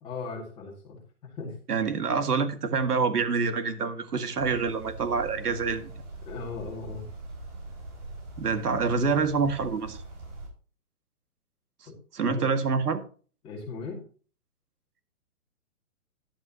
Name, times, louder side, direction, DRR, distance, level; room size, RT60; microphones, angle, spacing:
voice 1, 0.0-1.0 1.4-1.5 6.2-7.1 11.9-12.0 12.2-12.5 13.4-14.0, left 4 dB, 10° left, -1 dB, 2.2 m, -37 dB
voice 2, 1.7-5.9 8.4-10.0 12.1-13.0, right 5 dB, 85° right, 9 dB, 2.0 m, -26 dB
sound 1, 4.4-10.5, right 2 dB, 50° right, 5.4 m, -42 dB
11.5 x 11.0 x 2.9 m, 0.39 s
hypercardioid pair, 170°, 45 cm